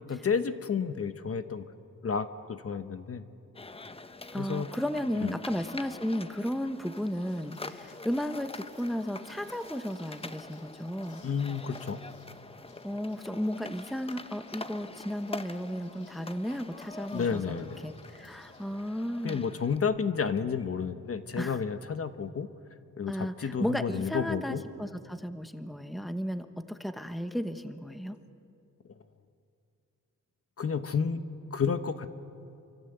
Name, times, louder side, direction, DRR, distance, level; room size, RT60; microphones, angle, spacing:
voice 1, 0.0-1.6 2.0-3.3 4.3-4.7 5.1-5.4 11.2-12.0 17.1-17.9 19.2-22.5 23.0-24.6 30.6-31.2 31.5-32.2, left 6 dB, 45° left, 10 dB, 1.1 m, -31 dB
sound 1, 3.6-19.8, left 3 dB, 20° left, 0.9 m, -45 dB
voice 2, 4.3-11.2 12.8-19.4 21.4-21.6 23.1-28.2, equal, ahead, 9 dB, 1.1 m, -34 dB
Liquid, 6.8-18.7, left 3 dB, 75° left, 5.4 m, -62 dB
28.0 x 25.0 x 8.0 m, 2.5 s
wide cardioid pair, 120°, 31 cm